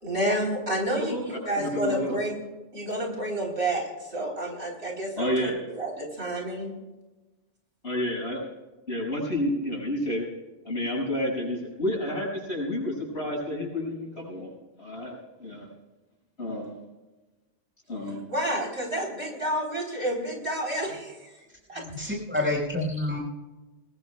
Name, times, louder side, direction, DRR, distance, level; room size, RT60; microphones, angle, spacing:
voice 1, 0.0-2.3 2.7-6.7 18.3-21.2 21.7-21.8, right 1 dB, 60° right, 0 dB, 4.1 m, -30 dB
voice 2, 1.6-2.2 5.2-5.6 7.8-8.4 8.9-10.2 10.6-14.5 14.8-15.7 16.4-16.8 17.9-18.2, left 1 dB, 55° left, -3 dB, 6.8 m, -30 dB
voice 3, 21.8-23.2, left 2 dB, 10° right, -2 dB, 5.2 m, -28 dB
24.0 x 19.5 x 2.3 m, 1.1 s
omnidirectional pair, 1.3 m